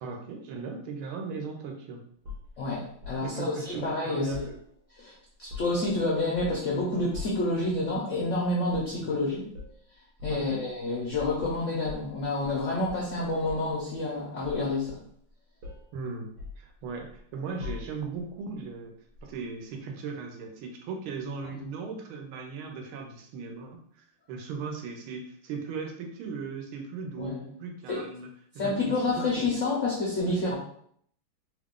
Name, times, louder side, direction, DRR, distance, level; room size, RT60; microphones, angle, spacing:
voice 1, 0.0-2.0 3.2-4.6 9.0-9.4 10.3-10.6 15.9-16.3 16.6-18.9 19.2-23.8 24.3-28.3 28.5-29.5, right 4 dB, 85° right, 3 dB, 1.5 m, -37 dB
sound 1, 2.2-3.2 4.3-5.0 5.3-5.9 6.3-6.7 7.1-7.5 8.6-9.0 9.5-9.8 10.2-10.4 11.1-12.6 12.8-13.8 14.4-15.3 15.6-15.9 16.4-17.2 17.6-18.2 19.1-19.3, left 5 dB, 60° right, 1.3 m, -42 dB
voice 2, 2.6-4.3 5.0-5.1 5.4-9.4 10.2-15.0 27.2-27.4 27.9-28.0 28.6-30.6, left 2 dB, 75° left, -4 dB, 0.7 m, -28 dB
3.4 x 2.4 x 3.6 m, 0.65 s
omnidirectional pair, 2.3 m